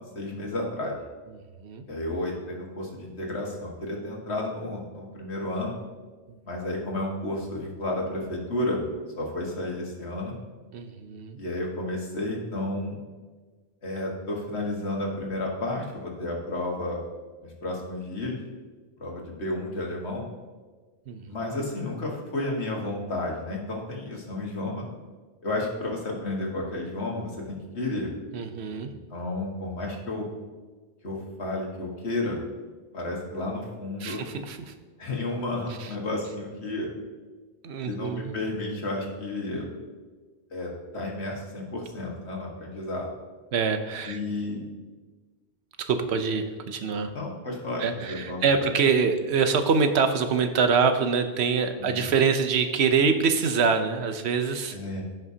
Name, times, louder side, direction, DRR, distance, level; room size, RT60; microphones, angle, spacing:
voice 1, 0.1-1.0 1.9-5.7 6.5-8.8 9.2-10.4 11.4-13.0 13.8-17.0 17.4-18.4 19.0-20.3 21.3-24.9 25.4-28.1 29.1-30.3 31.0-32.4 32.9-34.2 35.0-36.9 37.9-39.7 40.5-43.1 44.1-44.6 47.1-48.7 51.8-52.1 54.7-55.0, left 2 dB, 85° left, -1 dB, 1.9 m, -32 dB
voice 2, 10.7-11.4 21.1-21.2 28.3-28.9 34.0-34.7 35.8-35.9 37.6-38.4 43.5-44.2 45.8-47.1 47.8-54.8, right 5 dB, 80° right, 8 dB, 1.0 m, -25 dB
15.5 x 5.8 x 2.8 m, 1.4 s
omnidirectional pair, 1.1 m